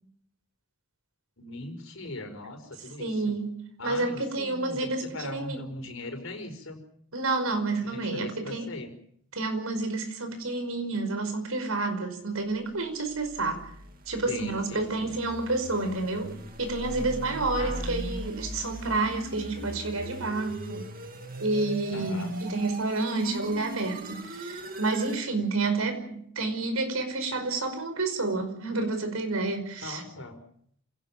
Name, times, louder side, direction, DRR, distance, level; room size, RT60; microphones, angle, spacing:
voice 1, 1.4-3.4 3.8-6.8 7.8-8.9 14.3-15.2 17.6-17.9 21.9-22.3 29.8-30.4, left 2 dB, 75° left, 6 dB, 5.2 m, -40 dB
voice 2, 3.0-5.6 7.1-8.7 9.3-13.7 14.1-20.9 21.4-30.0, right 3 dB, 85° right, 8 dB, 5.3 m, -29 dB
sound 1, 13.1-25.3, right 1 dB, 40° right, 2.5 m, -39 dB
27.5 x 17.5 x 7.5 m, 0.66 s
head